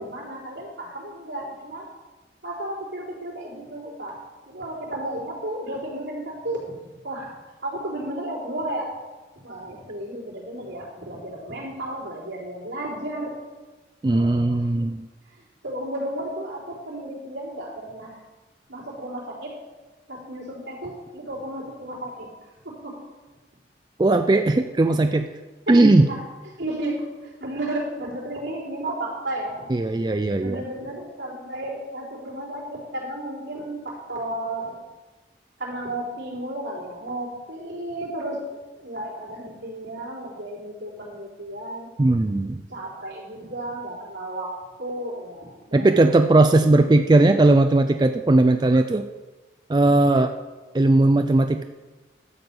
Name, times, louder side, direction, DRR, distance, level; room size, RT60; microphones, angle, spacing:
voice 1, 0.0-1.9 2.4-6.7 7.0-7.3 7.6-8.8 9.4-13.3 14.1-14.8 15.6-18.1 18.7-19.5 20.1-22.3 22.6-22.9 24.8-25.0 25.7-26.2 26.6-29.7 30.4-34.8 35.6-38.4 38.8-41.9 42.7-44.5 44.8-45.9, right 1 dB, 80° right, -5 dB, 4.1 m, -33 dB
voice 2, 14.0-15.0 24.0-25.3 25.7-26.1 29.7-30.6 42.0-42.6 45.7-49.1 49.7-50.3 50.7-51.6, right 2 dB, 20° right, 7 dB, 0.3 m, -18 dB
12.5 x 5.3 x 7.7 m, 1.2 s
head